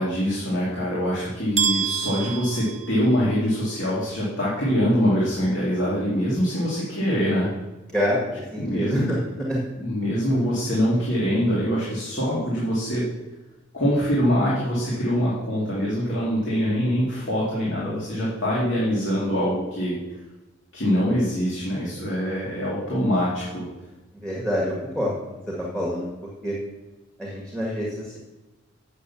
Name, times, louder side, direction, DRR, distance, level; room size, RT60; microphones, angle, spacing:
voice 1, 0.0-7.5 8.6-9.2 9.7-13.0 13.7-20.0 20.7-23.6, equal, 65° left, -7 dB, 2.6 m, -24 dB
sound 1, 1.6-3.5, right 7 dB, 35° right, 0.8 m, -27 dB
voice 2, 7.9-8.3 8.5-9.0 9.5-9.6 24.2-25.1 25.5-26.1 26.4-26.5 27.2-28.2, equal, 5° left, -4 dB, 1.7 m, -26 dB
8.4 x 6.6 x 7.1 m, 1.1 s
head